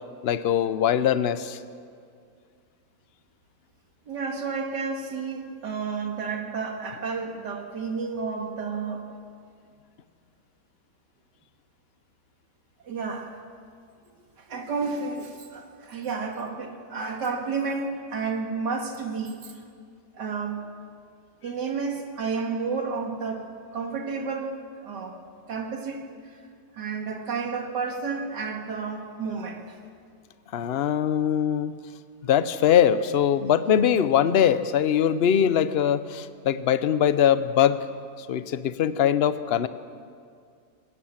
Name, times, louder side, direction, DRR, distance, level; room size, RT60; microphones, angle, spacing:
voice 1, 0.2-1.6 30.5-31.8 32.2-37.8 38.2-39.7, left 9 dB, 55° left, 13 dB, 0.7 m, -22 dB
voice 2, 4.1-9.0 12.8-13.3 14.4-19.6 20.1-20.6 21.4-25.2 25.5-26.4 26.7-29.8, right 4 dB, 75° right, 3 dB, 2.5 m, -31 dB
20.5 x 17.5 x 7.4 m, 2.2 s
omnidirectional pair, 1.8 m